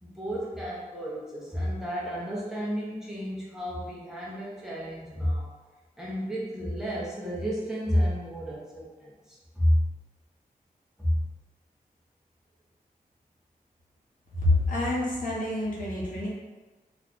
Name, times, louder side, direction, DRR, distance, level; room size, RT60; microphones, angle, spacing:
voice 1, 0.0-5.5 6.0-9.8 11.0-11.2, equal, 5° right, -6 dB, 0.7 m, -30 dB
voice 2, 14.4-16.3, left 2 dB, 65° left, -6 dB, 0.9 m, -27 dB
2.4 x 2.3 x 3.6 m, 1.3 s
wide cardioid pair, 135°, 15 cm